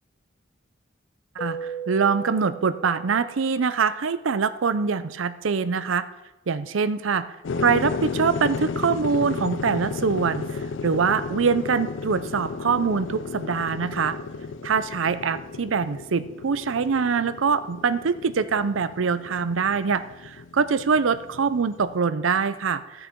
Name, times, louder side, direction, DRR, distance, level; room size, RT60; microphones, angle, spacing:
Keyboard (musical), 1.4-3.9, right 6 dB, 25° left, 0.7 m, -37 dB
voice 1, 1.4-6.1 6.5-7.3 7.6-14.2 14.6-23.1, right 5 dB, 85° right, 13 dB, 0.6 m, -24 dB
sound 1, 7.4-22.0, left 4 dB, 70° left, 0.4 m, -33 dB
14.5 x 6.4 x 4.5 m, 1.0 s
head